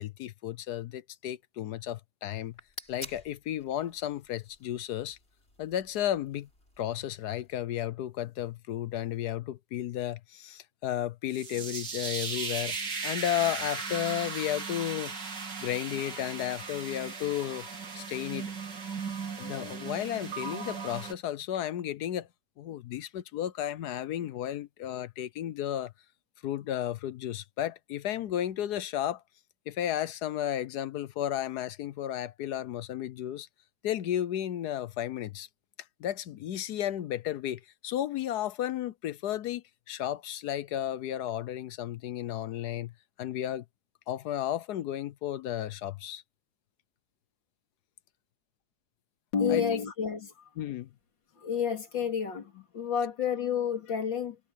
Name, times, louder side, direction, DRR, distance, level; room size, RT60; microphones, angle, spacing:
voice 1, 0.0-2.5 2.9-5.2 5.6-6.5 6.8-12.8 13.0-15.1 15.6-17.7 17.9-18.5 19.4-22.3 22.6-25.9 26.4-29.2 29.7-33.5 33.8-35.5 36.0-42.9 43.2-43.6 44.1-46.2 49.5-49.8 50.6-50.9, left 11 dB, 70° left, 1.2 m, -33 dB
sound 1, 2.3-7.5, left 1 dB, 35° left, 6.3 m, -50 dB
sound 2, 11.3-21.1, right 4 dB, 70° right, 3.3 m, -37 dB
voice 2, 49.3-50.5 51.4-54.4, left 7 dB, 85° left, 3.6 m, -30 dB
omnidirectional pair, 2.0 m